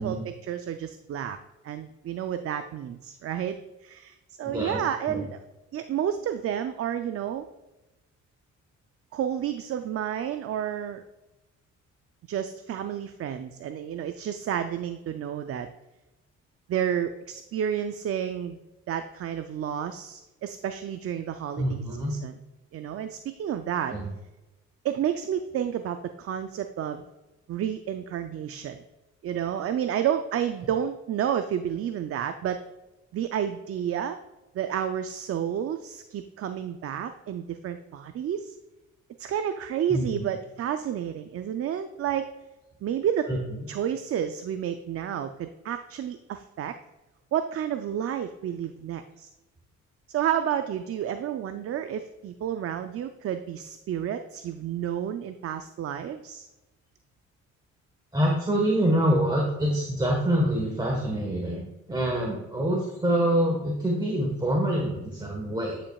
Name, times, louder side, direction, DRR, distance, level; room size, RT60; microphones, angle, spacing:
voice 1, 0.0-1.4 1.6-3.6 3.8-5.4 5.7-7.5 9.1-11.0 12.3-15.7 16.7-18.6 18.9-21.8 22.1-22.3 22.7-23.9 24.8-27.0 27.5-28.8 29.2-32.6 33.1-34.2 34.5-38.6 39.2-42.3 42.8-43.3 43.7-46.7 47.3-49.3 50.1-56.5, right 9 dB, 50° right, 9 dB, 0.5 m, -30 dB
voice 2, 4.4-4.8 5.1-5.2 21.6-22.1 23.9-24.1 39.9-40.1 43.3-43.4 58.1-65.8, right 1 dB, 15° right, -1 dB, 1.3 m, -26 dB
9.9 x 5.3 x 2.3 m, 1.0 s
cardioid pair, 90°, 30 cm